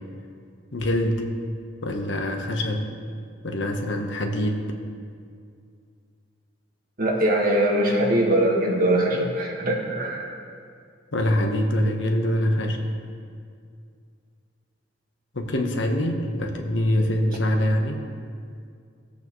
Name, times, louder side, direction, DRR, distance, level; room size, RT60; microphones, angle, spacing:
voice 1, 0.7-1.3 1.8-2.9 3.4-4.6 11.1-12.8 15.3-18.0, left 1 dB, 80° left, 4 dB, 1.1 m, -24 dB
voice 2, 7.0-10.3, right 1 dB, 50° right, -1 dB, 1.7 m, -22 dB
17.0 x 8.3 x 3.2 m, 2.3 s
head